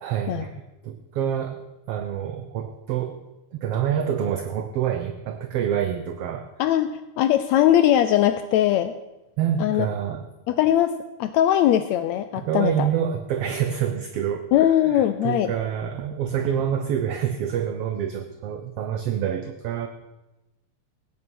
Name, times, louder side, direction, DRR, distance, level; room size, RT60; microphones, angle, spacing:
voice 1, 0.0-0.6 0.8-3.2 3.5-6.5 9.4-10.3 12.4-14.5 14.9-19.9, right 9 dB, 75° right, 8 dB, 1.4 m, -27 dB
voice 2, 6.6-8.9 9.6-9.9 10.5-12.9 14.5-15.5, left 11 dB, 80° left, 10 dB, 1.7 m, -20 dB
16.5 x 9.7 x 6.2 m, 1.0 s
omnidirectional pair, 3.6 m